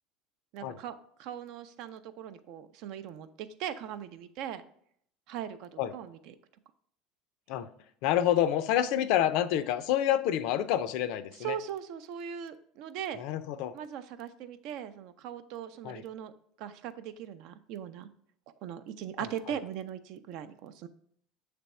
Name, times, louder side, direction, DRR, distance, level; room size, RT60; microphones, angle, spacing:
voice 1, 0.5-4.6 5.3-6.3 11.3-13.2 13.7-16.3 16.6-18.1 18.6-20.9, right 9 dB, 65° right, 11 dB, 0.5 m, -40 dB
voice 2, 8.0-11.6 13.2-13.7 15.8-16.0 19.2-19.3, left 11 dB, 70° left, 12 dB, 0.4 m, -28 dB
6.8 x 3.4 x 4.2 m, 0.65 s
supercardioid pair, 115°, 0 cm